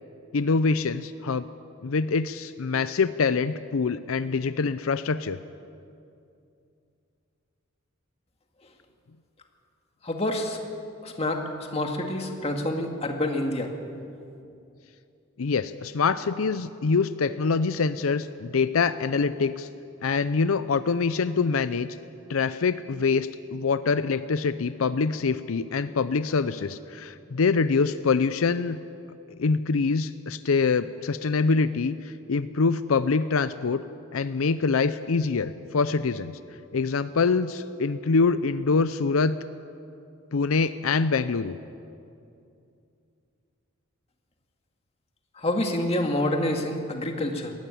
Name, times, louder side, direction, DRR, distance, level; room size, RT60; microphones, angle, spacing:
voice 1, 0.3-1.5 1.8-5.4 15.4-19.7 20.0-22.0 22.3-28.8 29.4-33.8 34.1-36.4 36.7-39.4 40.3-41.5, left 4 dB, 85° left, 13 dB, 0.6 m, -25 dB
voice 2, 10.0-10.6 11.0-13.7 45.4-47.5, left 1 dB, 30° left, 3 dB, 2.0 m, -27 dB
19.5 x 14.5 x 10.0 m, 2.6 s
head